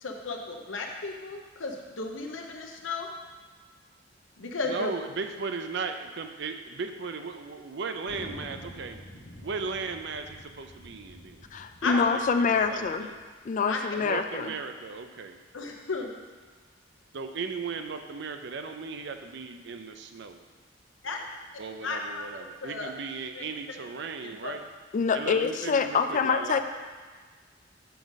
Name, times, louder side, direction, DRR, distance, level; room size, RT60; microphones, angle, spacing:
voice 1, 0.0-3.1 4.4-4.9 11.8-12.1 13.7-13.8 15.5-16.1 21.0-21.3 21.8-22.3 22.6-22.9 23.3-23.4 24.2-24.5, left 3 dB, 90° left, 2 dB, 0.9 m, -34 dB
voice 2, 4.6-9.0 9.4-11.5 11.8-13.2 14.0-15.4 17.1-20.4 21.6-24.6 25.1-26.6, right 4 dB, 65° right, 7 dB, 0.5 m, -36 dB
Thunder, 8.1-13.2, equal, 70° left, 1.2 m, -48 dB
voice 3, 11.5-13.1 13.4-14.5 24.9-26.6, left 5 dB, 40° left, 8 dB, 0.4 m, -26 dB
6.9 x 6.1 x 4.0 m, 1.5 s
head